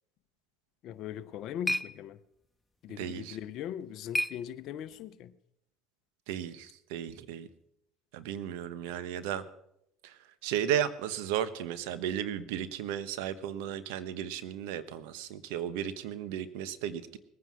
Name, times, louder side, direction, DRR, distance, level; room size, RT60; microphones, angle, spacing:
voice 1, 0.8-2.2 2.8-5.3, left 10 dB, 60° left, 0.8 m, -40 dB
sound 1, 0.9-5.1, left 1 dB, 10° left, 0.7 m, -38 dB
voice 2, 3.0-3.4 6.3-7.5 8.1-9.4 10.0-17.2, right 10 dB, 80° right, 1.1 m, -34 dB
20.0 x 9.6 x 6.2 m
supercardioid pair, 100°, 0 cm